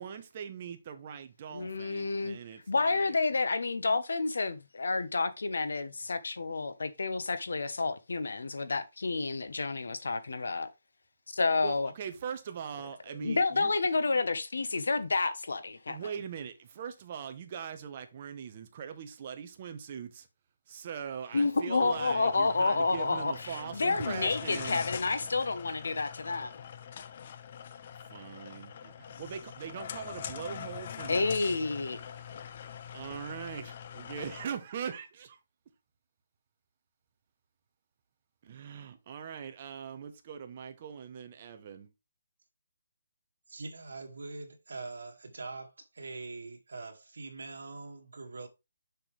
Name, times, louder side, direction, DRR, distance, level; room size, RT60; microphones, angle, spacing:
voice 1, 0.0-3.1 11.6-13.7 15.9-20.3 20.7-24.8 28.1-32.4 32.9-35.4 38.4-41.9, right 7 dB, 25° right, 0.9 m, -41 dB
voice 2, 1.5-2.4 2.7-10.7 11.3-11.9 13.2-16.0 21.3-26.5 31.1-32.0, left 3 dB, 70° left, 1.1 m, -30 dB
sound 1, 21.8-34.5, left 8 dB, 30° left, 0.5 m, -43 dB
voice 3, 43.5-48.5, right 3 dB, 70° right, 1.9 m, -43 dB
6.8 x 5.9 x 3.3 m
hypercardioid pair, 175°, 0 cm